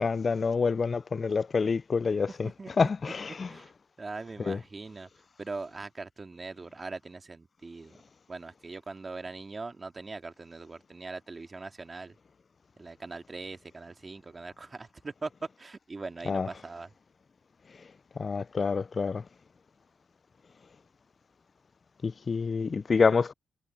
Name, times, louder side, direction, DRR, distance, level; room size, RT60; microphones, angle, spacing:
voice 1, 0.0-2.5 2.8-3.5 4.5-4.6 16.3-16.5 18.2-19.2 22.0-23.3, left 5 dB, 45° left, 0.4 m, -27 dB
voice 2, 4.0-5.1 5.4-8.0 8.3-12.1 12.8-15.3 15.6-16.9, right 3 dB, 35° right, 2.2 m, -41 dB
supercardioid pair, 55°, 0 cm